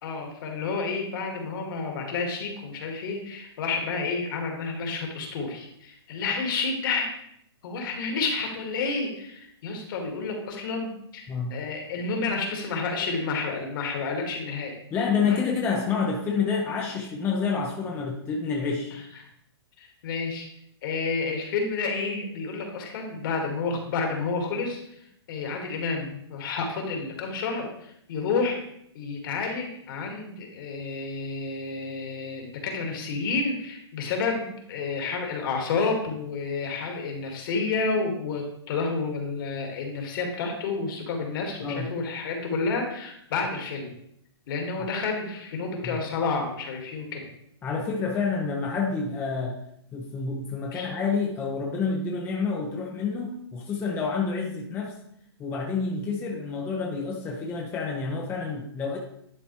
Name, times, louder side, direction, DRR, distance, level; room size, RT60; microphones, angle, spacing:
voice 1, 0.0-7.1 7.6-14.7 15.2-15.5 18.9-19.0 19.8-20.5 20.8-24.8 25.3-28.6 28.9-43.9 44.5-47.3 50.7-50.9, left 4 dB, 50° left, 2 dB, 1.8 m, -30 dB
voice 2, 14.9-18.9 41.6-41.9 45.8-46.0 47.6-49.6 49.9-55.0 55.4-59.0, left 5 dB, 15° left, -1 dB, 0.6 m, -28 dB
10.5 x 4.1 x 3.0 m, 0.73 s
hypercardioid pair, 150°, 14 cm